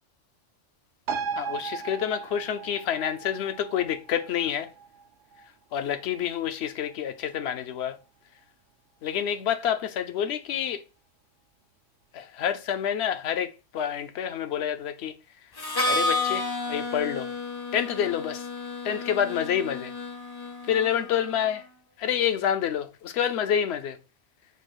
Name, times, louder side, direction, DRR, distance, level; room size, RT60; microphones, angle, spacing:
sound 1, 1.1-8.0 8.4-8.5, right 6 dB, 75° right, 0.9 m, -38 dB
voice 1, 1.4-4.7 5.7-8.0 9.0-10.8 12.1-15.1 15.9-17.3 17.7-18.5 18.8-19.9 20.7-21.7 22.0-24.0, left 9 dB, 65° left, 0.8 m, -28 dB
Harmonica, 15.6-21.3, left 2 dB, 30° left, 0.5 m, -31 dB
4.7 x 2.4 x 4.4 m
omnidirectional pair, 1.3 m